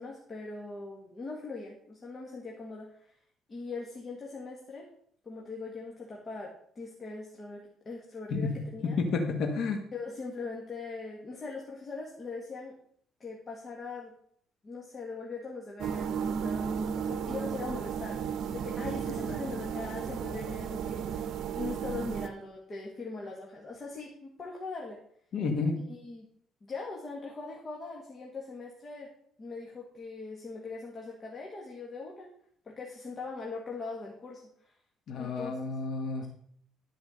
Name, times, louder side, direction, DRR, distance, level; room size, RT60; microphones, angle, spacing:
voice 1, 0.0-3.1 3.5-4.9 5.2-9.0 9.9-12.8 13.2-14.1 14.6-25.0 25.9-26.3 26.6-29.1 29.4-32.3 32.6-34.7 35.2-35.6, left 3 dB, 30° left, -2 dB, 2.0 m, -41 dB
voice 2, 8.8-9.8 25.3-25.8 35.1-36.3, left 4 dB, 65° left, 3 dB, 1.6 m, -30 dB
sound 1, 15.8-22.3, right 7 dB, 70° right, 0.8 m, -34 dB
13.0 x 5.0 x 6.5 m, 0.65 s
cardioid pair, 120°, 0 cm